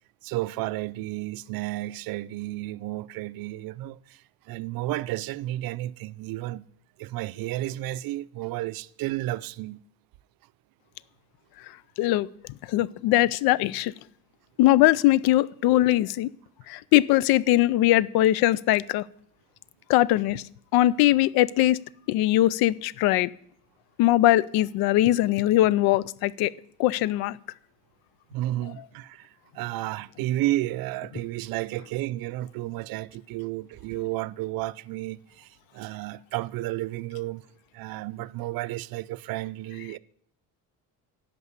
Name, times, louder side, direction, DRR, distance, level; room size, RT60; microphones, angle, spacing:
voice 1, 0.2-4.2 4.5-6.7 7.0-9.8 28.3-37.4 37.7-40.0, right 16 dB, 70° right, 0.5 m, -32 dB
voice 2, 12.7-13.9 14.6-16.3 16.7-19.0 19.9-20.4 20.7-21.8 22.1-23.3 24.0-26.5 26.8-27.4, left 15 dB, 80° left, 0.5 m, -21 dB
11.0 x 5.3 x 8.1 m
cardioid pair, 120°, 37 cm